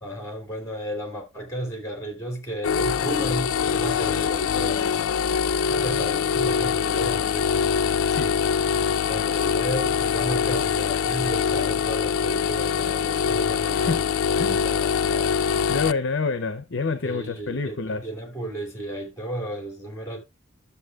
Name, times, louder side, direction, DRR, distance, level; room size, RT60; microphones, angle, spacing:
voice 1, 0.0-5.0 5.7-7.8 9.0-15.4 17.0-20.2, equal, 15° left, 3.0 m, -33 dB
sound 1, 2.6-15.9, left 7 dB, 90° left, 0.4 m, -23 dB
voice 2, 13.7-14.0 14.4-14.6 15.7-18.0, left 4 dB, 55° left, 0.7 m, -27 dB
13.0 x 7.1 x 2.4 m
head